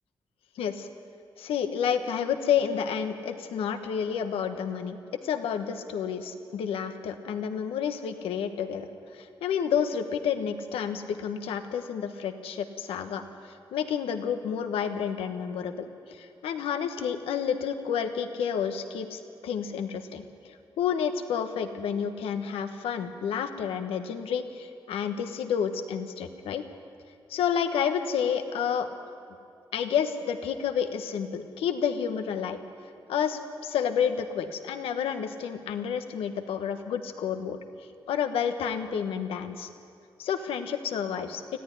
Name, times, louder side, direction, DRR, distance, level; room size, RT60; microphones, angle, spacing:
voice 1, 0.6-0.9 1.4-8.9 9.1-26.6 27.3-28.9 29.7-32.6 33.1-37.6 38.1-39.7 40.2-41.4, left 7 dB, 90° left, 7 dB, 1.2 m, -30 dB
19.0 x 14.5 x 9.9 m, 2.5 s
supercardioid pair, 50°, 9 cm